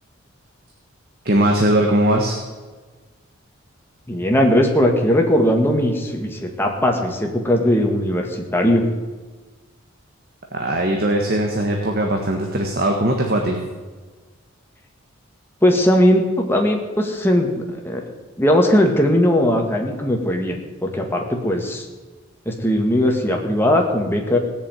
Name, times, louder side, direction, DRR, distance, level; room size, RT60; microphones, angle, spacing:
voice 1, 1.2-2.4 10.5-13.6, right 1 dB, 45° right, 2 dB, 1.6 m, -19 dB
voice 2, 4.1-8.8 15.6-18.0 18.4-21.9 22.5-24.4, left 1 dB, 10° left, 1 dB, 2.0 m, -19 dB
17.5 x 7.1 x 9.3 m, 1.3 s
head